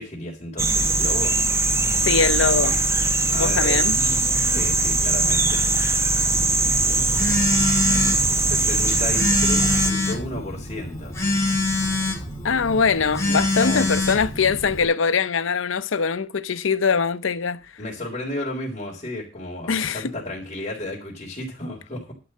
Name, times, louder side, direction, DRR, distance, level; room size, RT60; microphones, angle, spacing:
voice 1, 0.0-1.3 3.3-3.8 4.5-5.7 8.4-11.2 13.6-13.9 17.8-22.1, left 1 dB, 30° left, 3.8 m, -33 dB
sound 1, 0.6-9.9, right 3 dB, 15° right, 0.8 m, -21 dB
voice 2, 2.0-2.8 3.3-3.9 12.4-17.6 19.7-20.0, left 5 dB, 80° left, 0.7 m, -22 dB
Telephone, 6.3-14.8, left 2 dB, 15° left, 2.4 m, -26 dB
11.5 x 5.5 x 7.7 m
head